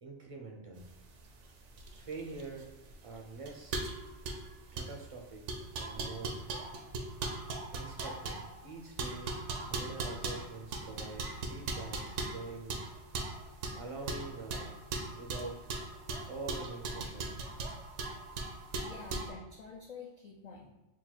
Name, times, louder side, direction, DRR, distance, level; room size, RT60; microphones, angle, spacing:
voice 1, 0.0-0.9 2.0-2.8 3.0-3.8 4.7-5.5 5.8-6.4 7.7-9.3 9.7-12.8 13.7-14.8 15.1-15.7 16.1-17.3, right 3 dB, 55° right, 1 dB, 0.4 m, -45 dB
sound 1, 0.9-19.3, right 3 dB, 85° right, 1.0 m, -39 dB
voice 2, 18.8-20.7, left 4 dB, 65° left, 0 dB, 0.4 m, -48 dB
3.7 x 2.3 x 4.4 m, 1.1 s
omnidirectional pair, 1.2 m